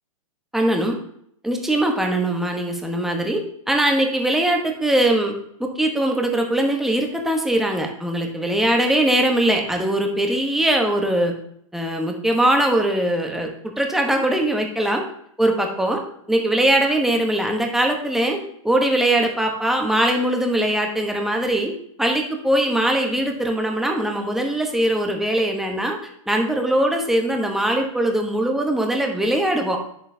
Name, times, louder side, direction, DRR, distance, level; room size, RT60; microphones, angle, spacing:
voice 1, 0.5-1.0 1.4-5.3 5.6-11.3 11.7-13.5 13.8-15.0 15.4-16.0 16.3-18.4 18.6-21.7 22.0-26.0 26.3-29.8, right 1 dB, ahead, 2 dB, 1.0 m, -21 dB
8.5 x 6.8 x 2.7 m, 0.69 s
hypercardioid pair, 130°, 18 cm